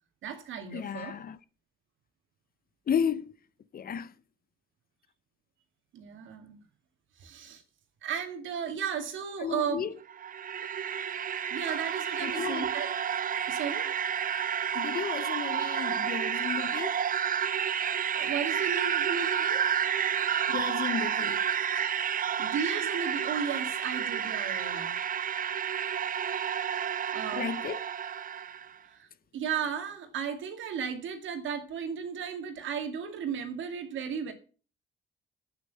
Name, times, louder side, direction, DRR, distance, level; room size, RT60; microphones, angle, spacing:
voice 1, 0.2-1.2 5.9-6.6 7.2-7.6 8.0-9.9 11.5-12.9 13.5-13.9 18.1-19.7 22.4-25.0 27.1-27.5 28.9-34.3, right 7 dB, 75° right, 2.2 m, -35 dB
voice 2, 0.7-1.4 2.9-3.3 3.7-4.1 9.4-9.9 12.2-12.6 14.7-16.9 20.5-21.5 27.4-27.8, left 7 dB, 50° left, 0.8 m, -33 dB
sound 1, 10.0-28.7, right 8 dB, 45° right, 0.6 m, -30 dB
8.7 x 8.2 x 6.8 m
cardioid pair, 90°, 20 cm